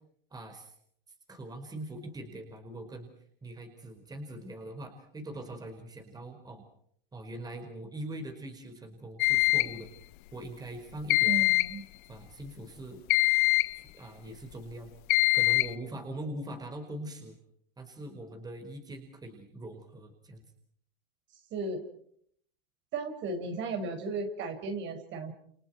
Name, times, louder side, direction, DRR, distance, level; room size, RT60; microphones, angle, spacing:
voice 1, 0.3-0.7 1.3-3.1 3.4-6.6 7.1-9.9 10.3-11.3 12.1-13.0 13.9-14.9 15.3-17.4 17.8-20.4, right 1 dB, 15° right, 5 dB, 5.0 m, -42 dB
sound 1, 9.2-9.8 11.1-11.8 13.1-13.8 15.1-15.7, left 21 dB, 60° left, 1.3 m, -24 dB
voice 2, 11.2-11.8 21.5-21.8 22.9-25.3, right 3 dB, 40° right, 6 dB, 6.2 m, -35 dB
29.5 x 29.0 x 4.6 m, 0.66 s
hypercardioid pair, 115°, 29 cm